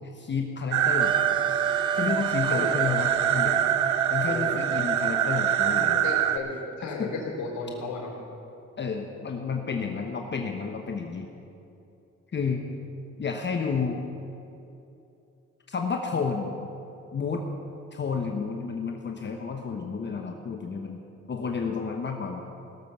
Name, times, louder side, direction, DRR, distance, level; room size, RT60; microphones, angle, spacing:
voice 1, 0.1-1.1 1.9-3.6 4.1-6.0 7.0-7.1 8.8-11.3 12.3-12.6 13.2-14.0 15.7-16.6 17.1-17.4 17.9-21.0 21.3-22.4, left 5 dB, 35° left, 3 dB, 1.0 m, -31 dB
sound 1, 0.7-6.4, right 10 dB, 70° right, 0.7 m, -25 dB
Wind instrument woodwind instrument, 1.0-6.5, right 5 dB, 20° right, 0.3 m, -31 dB
voice 2, 4.3-4.6 5.6-8.1, left 3 dB, 75° left, -2 dB, 3.7 m, -34 dB
17.5 x 7.1 x 6.8 m, 2.8 s
cardioid pair, 90°, 30 cm